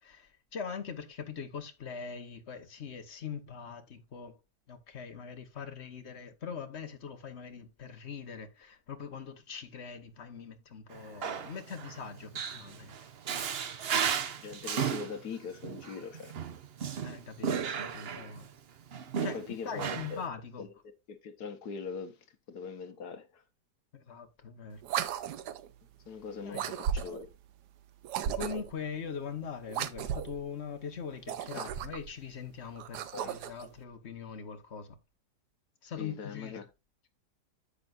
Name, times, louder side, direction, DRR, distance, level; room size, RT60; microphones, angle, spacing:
voice 1, 0.0-4.4 4.7-13.0 17.0-18.5 19.2-20.7 23.9-24.8 26.4-26.7 28.3-35.0 35.8-36.6, left 6 dB, 45° left, 1.3 m, -42 dB
Male speech man speaking, 10.9-18.5 18.9-20.3, right 7 dB, 50° right, 0.7 m, -35 dB
voice 2, 14.4-16.3 19.3-20.2 20.6-20.7 21.1-22.1 22.5-23.4 26.1-27.3 31.5-31.7 33.1-33.3 36.0-36.6, left 5 dB, 70° left, 1.6 m, -41 dB
sound 1, 24.8-25.7 26.5-27.3 28.0-28.8 29.7-30.4 31.2-32.1 32.8-33.7, right 9 dB, 75° right, 1.3 m, -35 dB
10.0 x 7.6 x 2.5 m
omnidirectional pair, 1.8 m